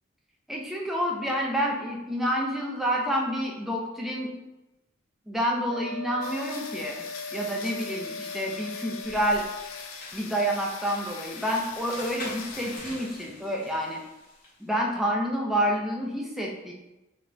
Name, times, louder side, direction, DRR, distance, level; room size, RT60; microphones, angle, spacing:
voice 1, 0.5-4.3 5.3-7.0 7.3-9.5 10.1-14.0 14.6-16.7, equal, ahead, -2 dB, 0.3 m, -28 dB
Wind instrument woodwind instrument, 5.7-9.9, left 3 dB, 80° right, 0.6 m, -39 dB
sound 1, 6.2-12.8, left 6 dB, 85° left, 0.3 m, -42 dB
sound 2, 9.0-14.6, left 2 dB, 45° left, 0.8 m, -45 dB
3.0 x 2.4 x 2.2 m, 1.0 s
head